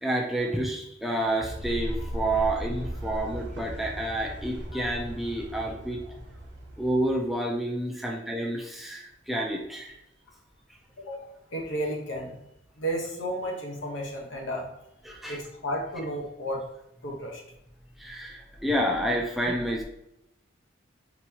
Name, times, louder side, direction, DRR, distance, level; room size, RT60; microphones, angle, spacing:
voice 1, 0.0-6.0 6.8-9.9 15.1-15.4 18.0-19.8, right 1 dB, ahead, -1 dB, 0.4 m, -29 dB
sound 1, 1.4-7.3, equal, 65° right, 0.9 m, -37 dB
voice 2, 2.0-2.4 4.7-4.9 11.0-12.4 12.8-14.8 15.3-16.6 17.0-17.4, equal, 75° left, 0 dB, 1.0 m, -33 dB
4.2 x 3.5 x 2.8 m, 0.82 s
head